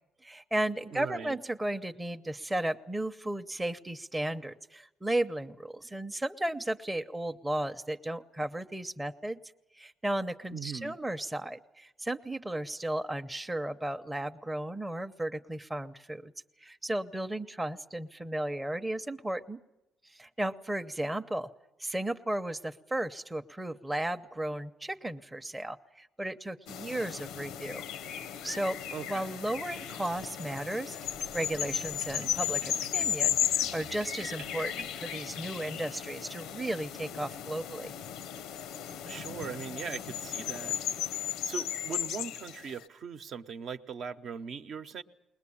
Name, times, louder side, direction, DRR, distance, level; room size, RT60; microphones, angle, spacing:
voice 1, 0.2-9.4 9.7-16.3 16.6-19.6 20.0-21.5 21.8-27.8 28.4-28.8 29.1-31.0 31.3-37.9, right 1 dB, 10° right, 7 dB, 0.7 m, -34 dB
voice 2, 0.9-1.4 10.5-11.0 28.9-29.3 39.1-40.8 41.4-45.0, right 6 dB, 55° right, 8 dB, 0.9 m, -40 dB
sound 1, 26.7-42.8, left 10 dB, 85° left, 0.7 m, -35 dB
sound 2, 31.0-35.5, right 6 dB, 80° right, 1.1 m, -51 dB
20.5 x 20.5 x 8.6 m, 0.91 s
cardioid pair, 110°, 0 cm